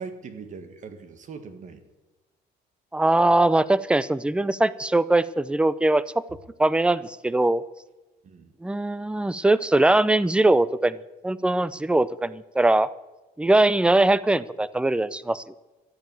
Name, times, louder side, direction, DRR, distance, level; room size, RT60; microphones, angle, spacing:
voice 1, 0.0-1.8 8.2-8.5, right 5 dB, 50° right, 9 dB, 1.9 m, -40 dB
voice 2, 2.9-6.0 6.6-7.6 8.6-11.0 11.2-12.9 13.4-15.4, right 2 dB, 5° right, 17 dB, 0.5 m, -21 dB
12.5 x 8.9 x 9.1 m, 1.1 s
cardioid pair, 110°, 17 cm